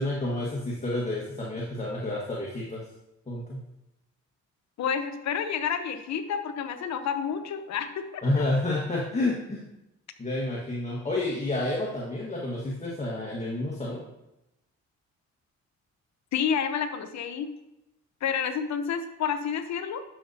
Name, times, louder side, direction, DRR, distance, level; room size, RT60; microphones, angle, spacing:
voice 1, 0.0-2.8 3.3-3.6 8.2-9.6 10.2-14.0, left 2 dB, 25° left, -4 dB, 1.6 m, -29 dB
voice 2, 4.8-8.4 16.3-17.5 18.2-20.0, left 7 dB, 65° left, 8 dB, 0.9 m, -29 dB
10.5 x 6.7 x 2.8 m, 0.91 s
cardioid pair, 90°, 30 cm